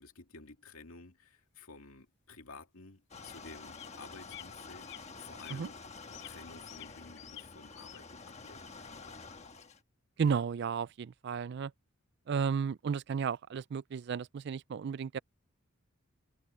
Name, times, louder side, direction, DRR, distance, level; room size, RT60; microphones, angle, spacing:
voice 1, 0.0-5.8 6.1-9.2, left 3 dB, 85° left, 2.3 m, -53 dB
sound 1, 1.6-1.7 2.5-2.6 3.2-3.4 3.8-4.0 4.3-4.5 4.7-5.0 5.4-5.6 6.1-7.4 7.8-8.0, left 15 dB, 55° left, 0.4 m, -50 dB
sound 2, 3.1-9.8, left 4 dB, 30° left, 1.3 m, -49 dB
voice 2, 10.2-11.7 12.3-15.2, right 6 dB, 55° right, 0.3 m, -33 dB
head